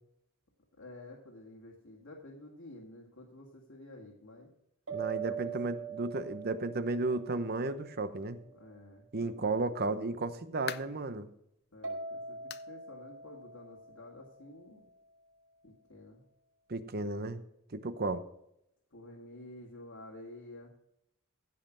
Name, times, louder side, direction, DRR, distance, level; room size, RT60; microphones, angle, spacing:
voice 1, 0.8-4.5 5.3-5.7 8.5-9.7 11.7-14.8 15.6-16.2 18.9-20.7, left 1 dB, 75° left, -2 dB, 2.0 m, -51 dB
voice 2, 4.9-8.4 9.1-11.3 16.7-17.4 17.7-18.2, right 3 dB, 45° right, 11 dB, 0.9 m, -34 dB
sound 1, 4.9-8.4 11.8-14.9, right 6 dB, 75° right, 5.1 m, -43 dB
sound 2, 10.3-11.1 11.6-11.7 12.5-12.8 13.1-13.2 13.7-13.8 14.9-15.0, left 11 dB, 50° left, 0.5 m, -43 dB
15.5 x 5.4 x 6.1 m, 0.78 s
head